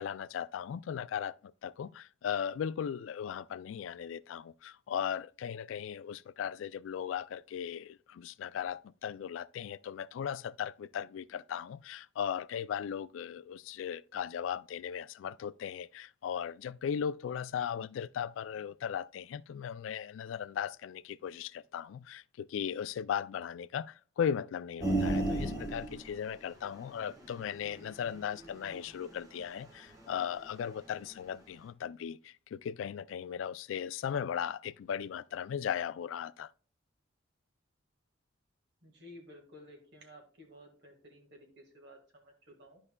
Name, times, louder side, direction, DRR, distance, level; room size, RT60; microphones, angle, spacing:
voice 1, 0.0-36.5, left 8 dB, 80° left, 0.3 m, -37 dB
sound 1, 24.8-30.6 31.0-31.1, right 2 dB, 20° right, 1.4 m, -35 dB
voice 2, 38.8-42.8, equal, 60° right, 1.8 m, -54 dB
12.0 x 5.4 x 2.2 m
head